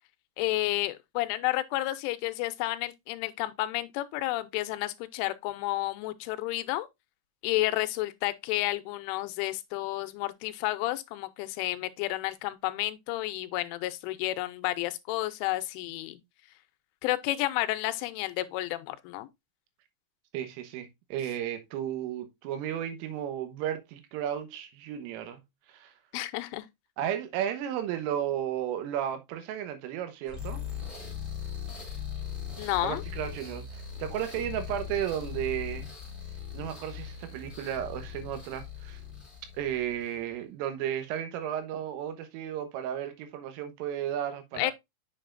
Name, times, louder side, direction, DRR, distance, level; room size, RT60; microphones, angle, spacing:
voice 1, 0.4-6.9 7.4-16.2 17.0-19.3 26.1-26.7 32.6-33.0 44.6-44.7, left 17 dB, 85° left, 3.0 m, -31 dB
voice 2, 20.3-25.4 25.7-25.9 27.0-30.6 32.8-35.9 36.5-39.0 39.6-44.7, right 10 dB, 85° right, 3.6 m, -34 dB
sound 1, 30.2-40.2, left 8 dB, ahead, 2.4 m, -40 dB
7.7 x 6.7 x 2.5 m
omnidirectional pair, 5.7 m